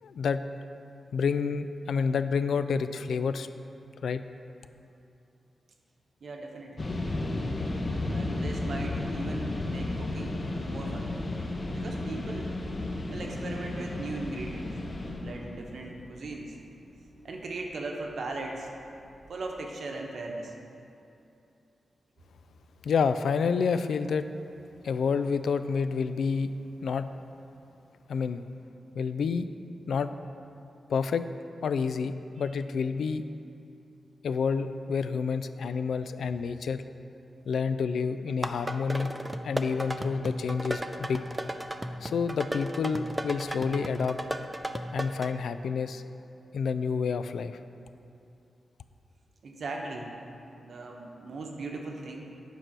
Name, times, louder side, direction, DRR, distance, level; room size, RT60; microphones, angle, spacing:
voice 1, 0.0-0.4 1.1-3.5 4.0-4.2 22.8-24.3 24.8-26.5 26.8-27.1 28.1-28.4 29.0-29.5 29.9-30.1 30.9-31.2 31.6-33.2 34.2-36.8 37.5-39.1 39.4-41.2 42.0-44.2 44.9-46.0 46.5-47.6, left 5 dB, 85° left, 11 dB, 0.3 m, -29 dB
voice 2, 6.2-7.0 8.1-11.1 11.7-12.5 13.1-14.7 15.1-16.6 17.2-18.7 19.3-20.5 49.4-50.1 50.6-52.3, right 2 dB, 60° right, 1 dB, 1.0 m, -38 dB
sound 1, 6.8-17.6 18.2-18.3 18.7-19.4, left 2 dB, 35° left, 0.8 m, -33 dB
sound 2, 38.3-45.3, right 1 dB, 10° right, 0.4 m, -35 dB
9.2 x 4.6 x 6.0 m, 2.7 s
wide cardioid pair, 145°, 0 cm